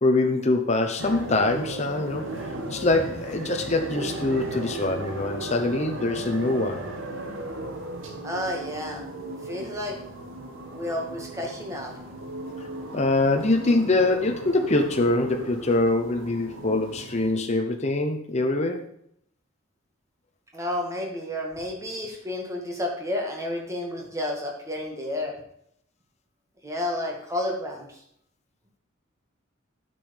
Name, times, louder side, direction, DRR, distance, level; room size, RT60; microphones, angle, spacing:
voice 1, 0.0-2.3 2.7-6.8 12.9-18.9, left 2 dB, 35° left, 4 dB, 0.9 m, -24 dB
sound 1, 1.0-17.3, right 1 dB, 70° right, 1.7 m, -36 dB
voice 2, 8.2-9.0 9.4-10.0 10.7-11.9 20.5-25.3 26.6-28.0, left 1 dB, 15° right, 0 dB, 2.2 m, -31 dB
9.2 x 7.0 x 5.4 m, 0.71 s
head